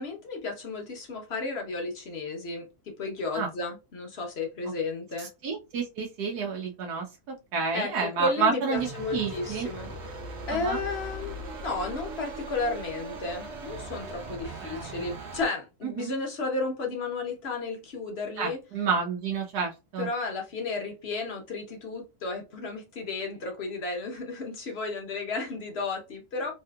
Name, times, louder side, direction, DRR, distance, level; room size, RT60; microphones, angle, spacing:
voice 1, 0.0-2.7 3.0-5.3 7.7-10.2 10.5-11.4 11.6-18.6 20.0-26.5, left 3 dB, 45° left, 1.1 m, -33 dB
voice 2, 5.2-9.7 10.5-10.8 14.6-15.0 15.8-16.1 18.4-20.1, right 5 dB, 90° right, 1.2 m, -30 dB
sound 1, 8.7-15.5, right 2 dB, 55° right, 0.9 m, -39 dB
3.3 x 2.7 x 2.3 m
omnidirectional pair, 1.6 m